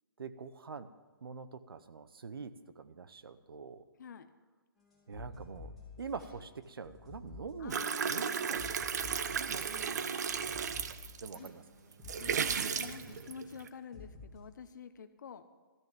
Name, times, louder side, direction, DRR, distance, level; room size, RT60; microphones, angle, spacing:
voice 1, 0.2-0.9 1.2-3.8 5.1-8.6 9.3-10.6 10.9-11.6, right 5 dB, 75° right, 13 dB, 0.9 m, -45 dB
sound 1, 4.9-12.6 12.9-13.2 13.9-14.3, left 4 dB, ahead, 2.6 m, -51 dB
voice 2, 7.6-8.5 9.7-10.4 11.4-11.5 12.2-15.4, left 6 dB, 55° left, 9 dB, 0.7 m, -48 dB
sound 2, 7.7-11.5 11.9-13.7, right 7 dB, 50° right, 0.6 m, -35 dB
13.5 x 6.5 x 8.6 m, 1.4 s
hypercardioid pair, 165°, 12 cm